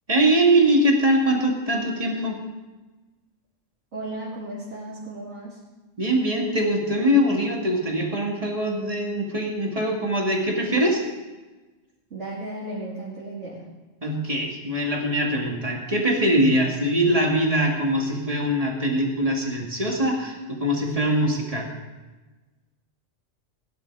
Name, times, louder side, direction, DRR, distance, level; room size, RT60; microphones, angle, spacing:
voice 1, 0.1-2.4 6.0-11.0 14.0-21.7, right 1 dB, 25° right, -1 dB, 2.4 m, -22 dB
voice 2, 3.9-5.6 12.1-13.7, right 1 dB, 60° right, -7 dB, 2.7 m, -35 dB
17.5 x 10.5 x 4.8 m, 1.2 s
omnidirectional pair, 1.3 m